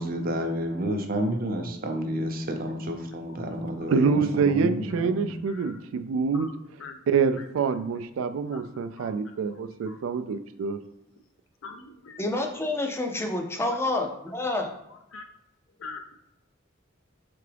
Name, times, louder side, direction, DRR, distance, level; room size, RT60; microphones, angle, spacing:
voice 1, 0.0-5.3, equal, 45° right, 4 dB, 0.6 m, -30 dB
voice 2, 3.9-6.5 7.1-10.8, right 5 dB, 85° right, 10 dB, 0.3 m, -26 dB
voice 3, 5.5-5.8 6.3-6.5 6.8-7.0 8.5-8.6 9.0-9.1 9.9-10.0 11.6-12.2 15.1-15.2 15.8-16.0, left 4 dB, 85° left, 5 dB, 0.6 m, -42 dB
voice 4, 12.2-14.7, left 2 dB, 10° left, 4 dB, 0.4 m, -28 dB
3.7 x 3.4 x 3.3 m, 0.84 s
head